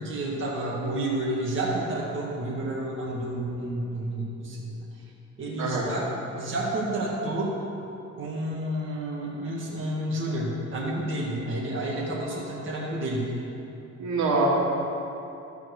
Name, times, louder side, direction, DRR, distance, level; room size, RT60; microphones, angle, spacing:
voice 1, 0.0-4.9 5.4-6.0 6.3-7.6 8.2-13.3, right 1 dB, 40° right, -5 dB, 1.9 m, -30 dB
voice 2, 5.6-5.9 14.0-14.5, right 4 dB, 70° right, -5 dB, 2.4 m, -25 dB
13.5 x 4.6 x 6.5 m, 2.8 s
cardioid pair, 90°, 30 cm